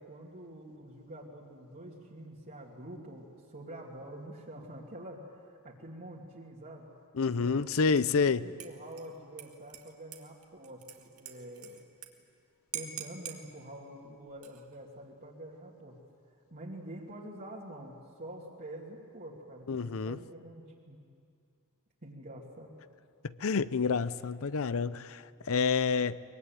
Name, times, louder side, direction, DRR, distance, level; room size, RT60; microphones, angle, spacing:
voice 1, 0.0-6.9 7.4-7.6 8.1-11.8 12.7-16.1 16.5-21.0 22.0-22.7, right 1 dB, 45° right, -5 dB, 2.7 m, -46 dB
voice 2, 7.1-8.5 19.7-20.2 23.2-26.2, left 5 dB, 65° left, 16 dB, 0.6 m, -28 dB
Dishes pots and pans / Liquid, 8.0-8.3 8.6-12.1 12.4-12.5 12.7-13.4 14.3-14.8, right 10 dB, 75° right, 2.1 m, -45 dB
23.5 x 22.0 x 9.3 m, 2.3 s
head